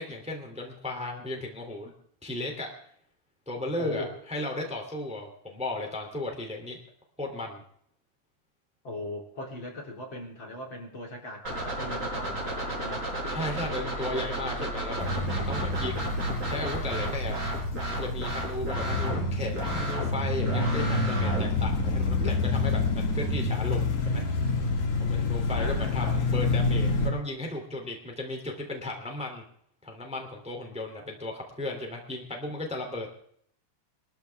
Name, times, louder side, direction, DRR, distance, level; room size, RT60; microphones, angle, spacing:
voice 1, 0.0-1.9 2.2-2.7 3.5-6.8 7.2-7.6 13.3-16.1 16.4-17.3 17.9-24.2 25.0-29.4 29.8-33.1, left 2 dB, ahead, 2 dB, 2.6 m, -35 dB
voice 2, 3.8-4.1 8.8-13.1 25.5-26.2, left 1 dB, 40° left, 0 dB, 4.0 m, -39 dB
sound 1, 11.4-22.3, right 1 dB, 25° right, 6.3 m, -33 dB
sound 2, 15.0-27.1, left 3 dB, 80° left, 3.9 m, -28 dB
23.0 x 13.5 x 3.5 m, 0.65 s
omnidirectional pair, 3.4 m